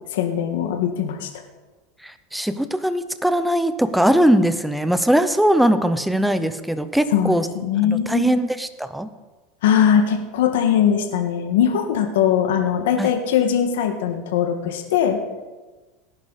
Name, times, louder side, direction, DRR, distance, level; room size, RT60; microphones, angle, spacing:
voice 1, 0.1-1.3 7.1-8.3 9.6-15.2, left 8 dB, 85° left, 4 dB, 1.7 m, -20 dB
voice 2, 2.0-7.5 7.8-9.1 13.0-13.1, equal, ahead, 11 dB, 0.8 m, -20 dB
18.5 x 10.5 x 4.2 m, 1.2 s
supercardioid pair, 130°, 0 cm